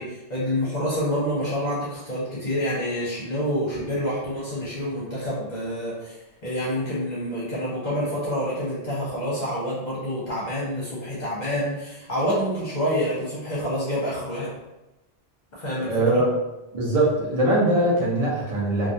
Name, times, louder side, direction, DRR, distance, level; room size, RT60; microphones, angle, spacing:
voice 1, 0.0-6.2 6.4-14.5 15.5-16.2, equal, 50° left, -7 dB, 0.7 m, -27 dB
voice 2, 15.9-16.3 16.7-18.9, right 1 dB, 40° right, -5 dB, 0.6 m, -21 dB
2.2 x 2.2 x 2.6 m, 1.0 s
omnidirectional pair, 1.1 m